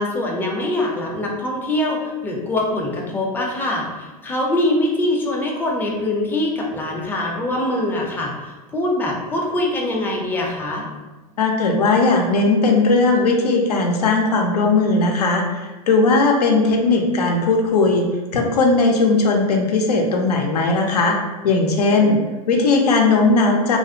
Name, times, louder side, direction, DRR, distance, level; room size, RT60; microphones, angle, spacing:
voice 1, 0.0-10.8 21.9-22.3, left 1 dB, 10° left, -1 dB, 0.4 m, -23 dB
voice 2, 11.4-18.1 18.3-21.2 21.4-22.2 22.5-23.8, left 3 dB, 85° left, 2 dB, 0.4 m, -17 dB
2.5 x 2.0 x 2.6 m, 1.2 s
hypercardioid pair, 100°, 20 cm